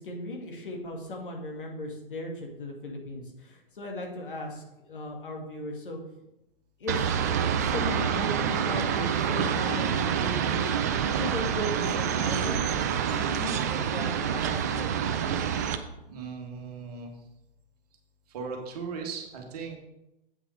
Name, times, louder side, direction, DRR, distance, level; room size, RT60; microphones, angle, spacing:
voice 1, 0.0-6.0 6.8-10.7 11.1-12.8 13.1-14.9, left 1 dB, 60° left, 1 dB, 2.1 m, -37 dB
sound 1, 6.9-15.8, right 8 dB, 20° right, 0.3 m, -27 dB
voice 2, 16.1-17.1 18.3-19.8, right 5 dB, 40° right, 2 dB, 1.7 m, -37 dB
8.1 x 5.9 x 4.8 m, 0.89 s
figure-of-eight pair, 115°, 29 cm